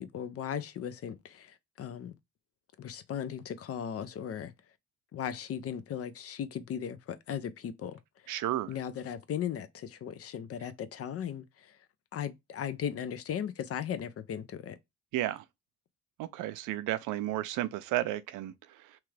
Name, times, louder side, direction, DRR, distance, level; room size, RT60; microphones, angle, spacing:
voice 1, 0.0-2.1 2.8-4.5 5.1-8.3 8.7-11.8 12.1-14.8, left 9 dB, 50° left, 0.5 m, -37 dB
voice 2, 8.3-8.7 15.1-15.4 16.2-19.0, right 14 dB, 90° right, 0.5 m, -33 dB
2.9 x 2.4 x 3.1 m
cardioid pair, 90°, 30 cm